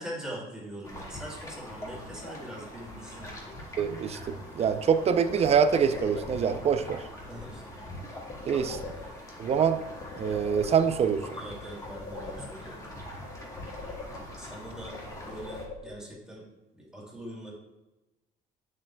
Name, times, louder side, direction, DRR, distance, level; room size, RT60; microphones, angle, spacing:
voice 1, 0.0-3.3 7.3-7.6 8.9-9.1 11.3-12.8 14.4-15.0 15.2-16.4 16.8-17.5, equal, 5° right, -5 dB, 2.3 m, -42 dB
sound 1, 0.8-15.7, left 1 dB, 20° left, 1.8 m, -43 dB
voice 2, 3.8-7.0 8.5-8.8 9.4-9.8 10.2-11.2, right 7 dB, 40° right, 10 dB, 0.5 m, -25 dB
sound 2, 4.6-6.6 8.1-9.4 9.8-11.2 11.5-12.9 13.2-14.6 14.9-16.3, left 4 dB, 50° left, 1.1 m, -44 dB
8.0 x 7.4 x 2.3 m, 1.0 s
cardioid pair, 110°, 17 cm